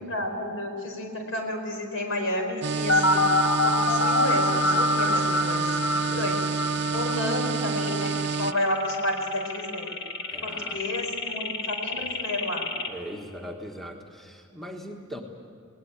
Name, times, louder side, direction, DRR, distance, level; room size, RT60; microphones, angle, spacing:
voice 1, 0.0-3.3 3.6-5.6 5.9-6.4 6.9-9.9 10.4-12.6, left 1 dB, 75° left, 3 dB, 4.7 m, -31 dB
sound 1, 2.6-8.5, right 5 dB, 55° right, 0.5 m, -29 dB
sound 2, 2.9-12.9, left 2 dB, 55° left, 1.8 m, -26 dB
voice 2, 10.3-10.8 11.9-12.1 12.9-15.2, equal, ahead, 2 dB, 1.4 m, -40 dB
20.5 x 19.0 x 8.9 m, 2.6 s
head